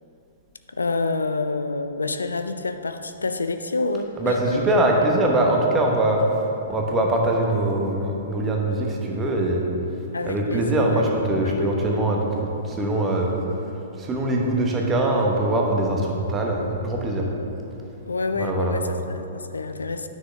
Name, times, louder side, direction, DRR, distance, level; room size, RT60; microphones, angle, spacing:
voice 1, 0.7-4.8 10.1-11.1 11.4-11.8 18.1-20.1, left 3 dB, 80° left, 9 dB, 0.4 m, -28 dB
voice 2, 4.2-6.2 6.7-9.6 10.2-13.4 14.0-17.3 18.4-18.8, right 1 dB, 20° right, 0 dB, 1.2 m, -22 dB
9.5 x 6.4 x 3.4 m, 2.8 s
figure-of-eight pair, 110°, 0 cm